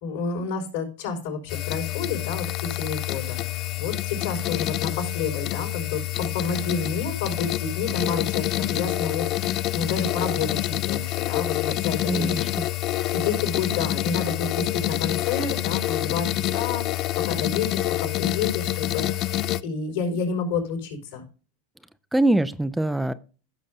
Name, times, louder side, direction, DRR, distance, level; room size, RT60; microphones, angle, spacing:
voice 1, 0.0-12.5 13.1-19.1 19.6-21.2, left 5 dB, 75° left, 2 dB, 4.9 m, -30 dB
sound 1, 1.5-19.6, left 15 dB, 45° left, 0.4 m, -27 dB
voice 2, 12.1-12.7 22.1-23.1, right 1 dB, 5° right, 12 dB, 0.5 m, -23 dB
15.5 x 6.3 x 2.8 m, 0.35 s
hypercardioid pair, 95°, 0 cm